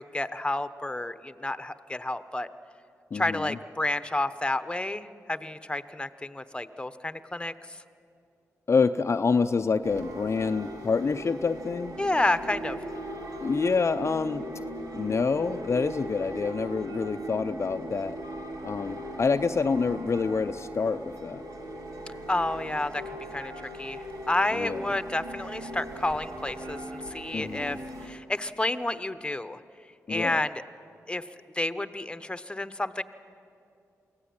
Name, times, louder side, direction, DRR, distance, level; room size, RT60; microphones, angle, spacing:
voice 1, 0.0-2.5 3.1-7.5 12.0-12.8 22.3-27.8 28.0-29.6 30.1-30.5 31.1-31.2 31.5-33.0, left 2 dB, 15° left, 12 dB, 1.1 m, -30 dB
voice 2, 3.1-3.6 8.7-12.0 13.4-14.5 14.9-18.2 18.6-21.4 24.5-24.8 27.3-27.8 30.1-30.4, left 4 dB, 45° left, 8 dB, 0.6 m, -27 dB
sound 1, 9.8-28.1, right 1 dB, 80° right, 2.5 m, -39 dB
23.5 x 16.0 x 8.8 m, 2.5 s
cardioid pair, 50°, 6 cm